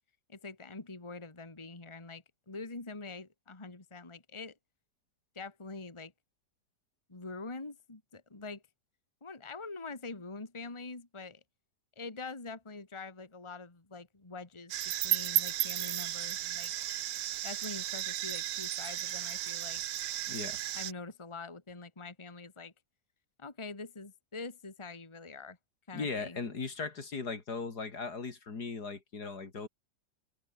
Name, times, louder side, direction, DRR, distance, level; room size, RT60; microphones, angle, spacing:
voice 1, 0.3-4.6 5.4-6.1 7.1-8.6 9.2-11.4 12.0-14.7 15.0-16.7 17.4-19.8 20.7-22.7 23.4-25.6 25.9-26.4, left 3 dB, 15° left, 1.9 m, -44 dB
sound 1, 14.7-20.9, right 12 dB, 70° right, 1.4 m, -34 dB
voice 2, 20.3-20.6 25.9-29.7, left 4 dB, 65° left, 3.3 m, -38 dB
omnidirectional pair, 1.9 m